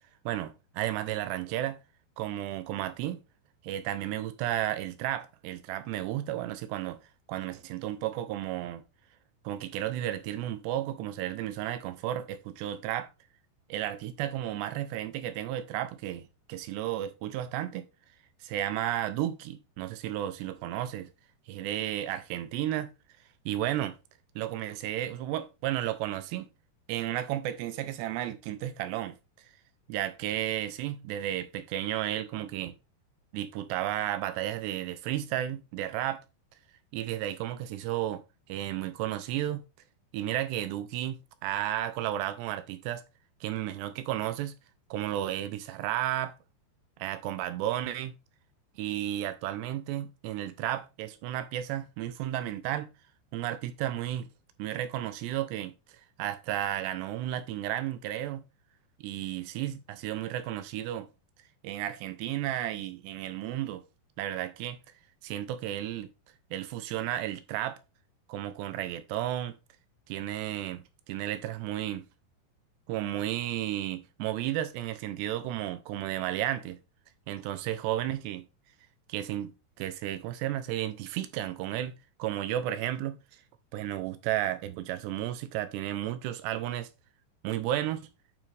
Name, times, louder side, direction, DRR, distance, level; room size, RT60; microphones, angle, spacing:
voice 1, 0.3-1.8 2.2-3.2 3.6-7.0 7.3-8.8 9.4-13.1 13.7-16.2 16.5-17.9 18.4-21.1 21.5-22.9 23.5-24.0 24.4-26.5 26.9-29.2 29.4-29.5 29.9-32.8 33.3-36.2 36.9-38.2 38.5-39.6 40.1-43.0 43.4-44.6 44.9-46.3 47.0-48.1 48.8-52.9 53.3-54.3 54.6-58.4 59.0-61.1 61.6-63.8 64.2-64.8 65.2-66.1 66.5-67.8 68.3-69.6 70.1-72.1 72.9-76.8 77.3-78.5 79.1-79.5 79.8-81.9 82.2-83.4 83.7-86.9 87.4-88.1, right 12 dB, 80° right, 2.7 m, -33 dB
9.0 x 6.0 x 3.3 m
omnidirectional pair, 5.1 m